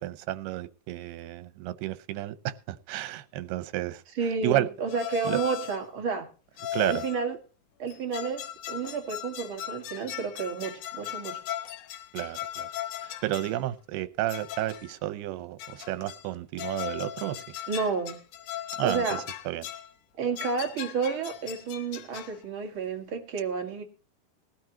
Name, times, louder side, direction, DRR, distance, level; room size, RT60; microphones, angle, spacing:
voice 1, 0.0-4.7 5.2-5.4 6.7-7.1 12.1-12.7 13.0-17.6 18.8-19.7, right 15 dB, 90° right, 14 dB, 2.8 m, -32 dB
voice 2, 4.2-6.3 6.9-7.4 7.8-11.4 17.7-18.2 18.8-19.2 20.2-23.8, right 5 dB, 40° right, 3 dB, 2.1 m, -31 dB
sound 1, 4.9-5.9 6.6-7.3 7.9-13.6 14.3-15.0 15.6-16.3 16.6-19.9 20.4-22.4, left 12 dB, 75° left, 1.9 m, -38 dB
19.0 x 12.5 x 2.9 m, 0.35 s
omnidirectional pair, 4.4 m